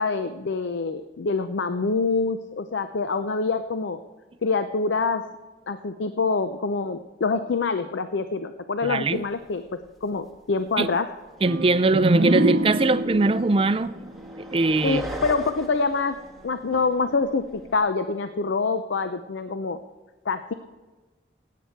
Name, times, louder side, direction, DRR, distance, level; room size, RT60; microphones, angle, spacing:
voice 1, 0.0-4.0 4.4-5.2 5.7-9.6 10.0-11.1 14.8-16.2 16.4-19.8 20.3-20.5, left 4 dB, 75° left, 0.5 m, -25 dB
voice 2, 8.8-9.2 10.8-10.9 11.4-14.1 14.5-15.0, right 2 dB, 30° right, 0.4 m, -21 dB
sound 1, 9.5-9.6 9.9-10.4 10.8-17.8, right 1 dB, ahead, 1.3 m, -41 dB
sound 2, 11.4-15.1, right 1 dB, 75° right, 0.7 m, -26 dB
17.0 x 8.5 x 4.5 m
head